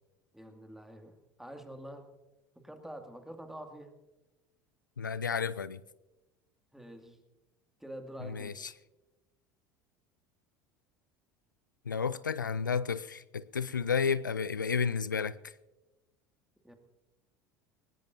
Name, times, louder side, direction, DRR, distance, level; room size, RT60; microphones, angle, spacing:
voice 1, 0.3-2.1 2.6-3.9 6.7-7.2 7.8-8.6 16.6-16.7, right 1 dB, 5° right, 5 dB, 2.3 m, -46 dB
voice 2, 5.0-5.8 8.2-8.7 11.9-15.5, left 6 dB, 90° left, 18 dB, 0.4 m, -32 dB
20.5 x 19.0 x 2.7 m, 1.0 s
figure-of-eight pair, 70°, 10 cm